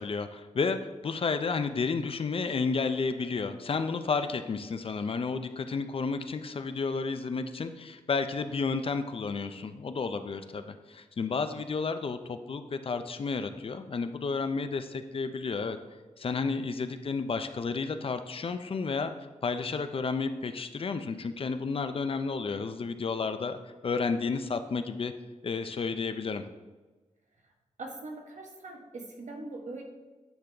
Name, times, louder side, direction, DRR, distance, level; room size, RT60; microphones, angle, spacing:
voice 1, 0.0-15.8 16.2-19.1 19.4-23.6 23.8-25.1 25.4-26.4, left 4 dB, 45° left, 9 dB, 0.4 m, -31 dB
voice 2, 27.8-29.8, right 2 dB, 70° right, 1 dB, 1.2 m, -41 dB
9.4 x 3.4 x 3.8 m, 1.2 s
wide cardioid pair, 105°, 13 cm